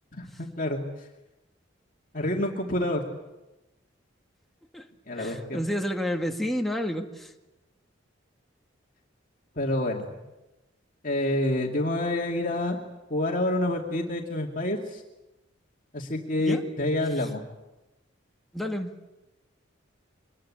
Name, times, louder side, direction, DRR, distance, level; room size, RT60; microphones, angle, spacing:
voice 1, 0.1-0.8 2.1-3.0 5.1-5.6 9.6-10.1 11.0-12.8 13.1-15.0 15.9-17.4, left 1 dB, 40° left, 0 dB, 2.5 m, -28 dB
voice 2, 5.2-7.3 16.4-16.6 18.5-18.9, equal, ahead, 2 dB, 1.8 m, -30 dB
25.0 x 20.5 x 8.7 m, 1.0 s
head